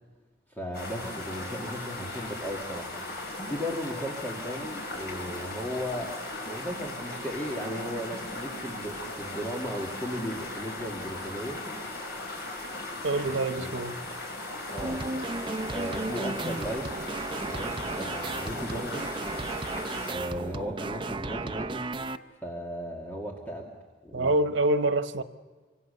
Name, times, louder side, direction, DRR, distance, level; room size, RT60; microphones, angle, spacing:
voice 1, 0.5-6.2 6.5-11.6 13.1-13.7 14.7-15.0 15.7-16.9 17.4-19.2 20.1-21.8 22.4-23.7 24.0-24.3, equal, 10° left, 2.3 m, -36 dB
sound 1, 0.7-20.1, left 2 dB, 55° left, 6.5 m, -38 dB
voice 2, 13.0-14.0 24.1-25.2, right 2 dB, 90° right, 1.2 m, -26 dB
sound 2, 14.8-22.2, right 3 dB, 25° right, 0.7 m, -34 dB
25.5 x 25.5 x 6.9 m
head